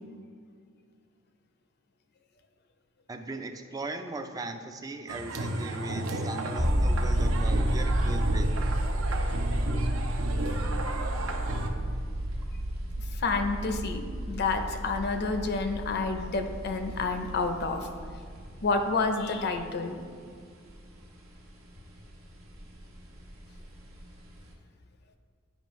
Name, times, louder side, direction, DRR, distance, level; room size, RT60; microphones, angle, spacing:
voice 1, 3.1-8.5, right 2 dB, 15° right, 6 dB, 0.3 m, -38 dB
sound 1, 5.1-11.7, right 1 dB, 70° right, 0.6 m, -33 dB
sound 2, 6.6-18.5, right 1 dB, 40° right, 1.0 m, -30 dB
sound 3, 7.2-24.5, equal, 90° right, 1.2 m, -48 dB
voice 2, 13.0-17.9 18.6-20.0, left 3 dB, 50° left, 6 dB, 0.5 m, -29 dB
9.2 x 5.1 x 3.1 m, 2.1 s
head